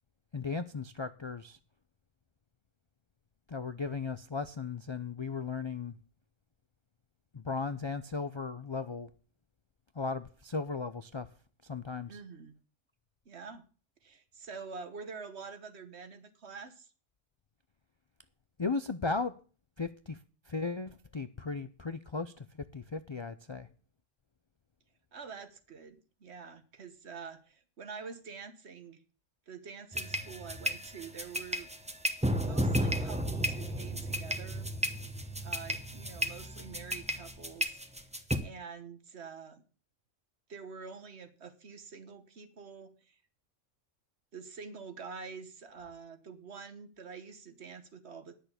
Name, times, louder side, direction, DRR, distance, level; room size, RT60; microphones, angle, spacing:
voice 1, 0.3-1.6 3.5-6.0 7.3-9.1 10.0-11.3 11.6-12.2 18.6-19.3 19.8-20.2 20.5-22.5 22.7-23.7, left 4 dB, 45° left, 0.4 m, -36 dB
voice 2, 12.1-12.6 13.2-13.6 14.0-16.9 25.1-29.0 29.5-31.7 32.4-34.7 35.4-37.8 38.3-39.6 40.5-43.2 44.3-48.4, right 5 dB, 60° right, 1.5 m, -46 dB
sound 1, 29.9-38.4, equal, 5° right, 0.9 m, -33 dB
10.0 x 6.5 x 8.3 m
omnidirectional pair, 1.3 m